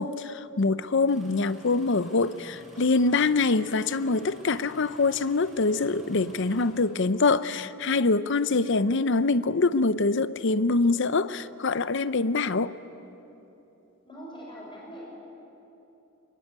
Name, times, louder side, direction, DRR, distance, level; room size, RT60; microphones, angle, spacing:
voice 1, 0.0-12.7, left 3 dB, 60° left, 0.7 m, -24 dB
Engine starting, 1.1-7.5 8.5-8.8 9.3-9.8 10.4-10.5, equal, ahead, 6.6 m, -51 dB
voice 2, 14.0-15.0, equal, 25° left, 6.4 m, -44 dB
24.5 x 21.5 x 9.6 m
head